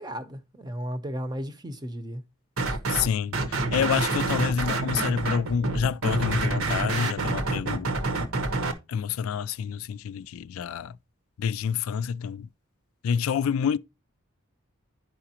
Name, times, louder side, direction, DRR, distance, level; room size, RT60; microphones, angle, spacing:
voice 1, 0.0-2.2 2.7-2.8, equal, 20° right, 0.7 m, -35 dB
sound 1, 2.6-3.1 3.3-8.7, right 2 dB, 70° right, 1.0 m, -27 dB
voice 2, 2.9-7.9 8.9-10.9 11.4-12.5 13.0-13.8, left 7 dB, 75° left, 0.3 m, -28 dB
10.5 x 4.8 x 2.8 m
head